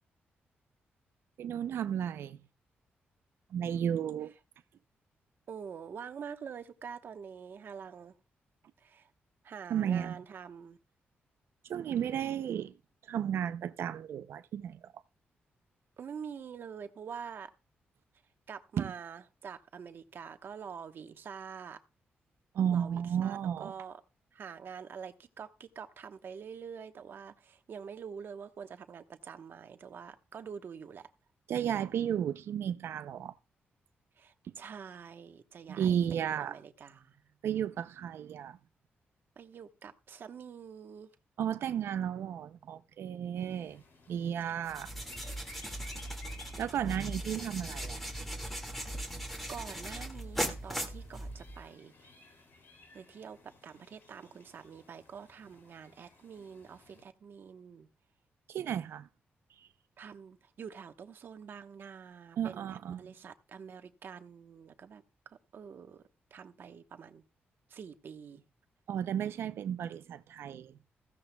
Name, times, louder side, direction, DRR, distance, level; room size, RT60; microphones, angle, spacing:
voice 1, 1.4-2.4 3.5-4.3 9.7-10.2 11.6-12.7 13.1-15.0 18.8-18.9 22.5-23.7 31.5-33.3 35.7-36.6 37.4-38.6 41.4-43.8 44.1-44.9 46.6-48.0 58.5-59.1 62.4-63.1 68.9-70.7, right 9 dB, 80° right, 0.5 m, -33 dB
voice 2, 5.5-8.1 8.8-9.1 9.4-10.8 16.0-17.5 18.5-21.8 22.7-24.0 24.3-31.1 34.2-37.3 39.4-41.1 44.4-44.9 49.1-52.1 52.9-57.9 60.0-66.0 66.3-67.2 67.7-68.4, right 7 dB, 60° right, 1.0 m, -46 dB
sound 1, 43.3-57.0, left 3 dB, 65° left, 2.7 m, -58 dB
sound 2, 44.6-51.7, right 1 dB, 5° left, 2.0 m, -39 dB
15.0 x 13.0 x 2.2 m
cardioid pair, 95°, 4 cm